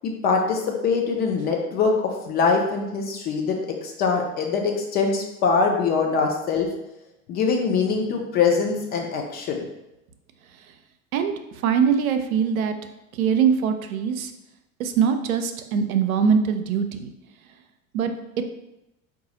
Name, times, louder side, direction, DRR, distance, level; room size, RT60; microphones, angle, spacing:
voice 1, 0.0-6.7 7.3-9.6, left 5 dB, 25° left, 1 dB, 0.4 m, -23 dB
voice 2, 11.6-12.7 13.1-14.3 14.8-17.1 17.9-18.1, right 7 dB, 70° right, 7 dB, 0.5 m, -22 dB
4.6 x 2.3 x 2.8 m, 0.90 s
figure-of-eight pair, 70°, 43 cm